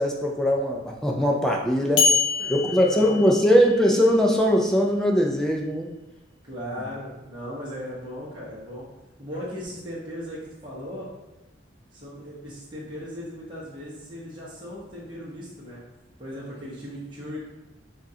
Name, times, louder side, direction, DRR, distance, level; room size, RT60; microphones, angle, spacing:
voice 1, 0.0-2.1 2.5-5.9, equal, 5° left, 0 dB, 0.5 m, -21 dB
sound 1, 2.0-4.0, left 5 dB, 85° left, 0.9 m, -25 dB
voice 2, 2.4-3.2 6.4-8.8 9.2-11.1 11.9-15.8 16.2-17.4, equal, 25° right, -7 dB, 1.1 m, -37 dB
7.2 x 2.5 x 2.8 m, 1.0 s
head